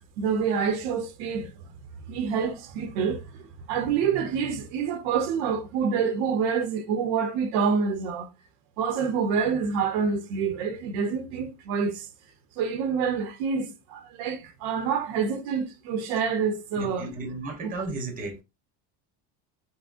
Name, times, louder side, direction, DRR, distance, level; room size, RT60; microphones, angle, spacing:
voice 1, 0.2-1.5 2.1-8.3 8.8-12.1 12.6-17.1 17.6-17.7, right 6 dB, 70° right, 0.7 m, -27 dB
voice 2, 16.8-18.3, right 3 dB, 20° right, 0.8 m, -34 dB
3.7 x 2.0 x 2.4 m
cardioid pair, 130°, 44 cm